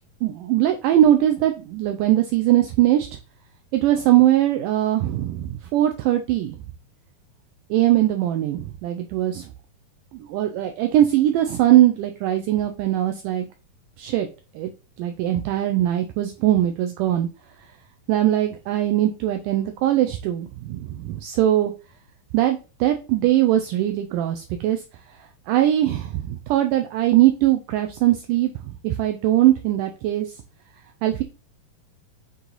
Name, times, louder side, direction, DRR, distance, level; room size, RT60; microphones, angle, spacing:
voice 1, 0.2-3.1 3.7-6.6 7.7-9.5 10.1-13.5 14.0-14.3 14.6-14.7 15.0-17.3 18.1-21.7 22.3-24.8 25.5-30.4 31.0-31.2, right 13 dB, 85° right, 5 dB, 1.9 m, -21 dB
8.0 x 3.1 x 3.9 m, 0.32 s
omnidirectional pair, 4.3 m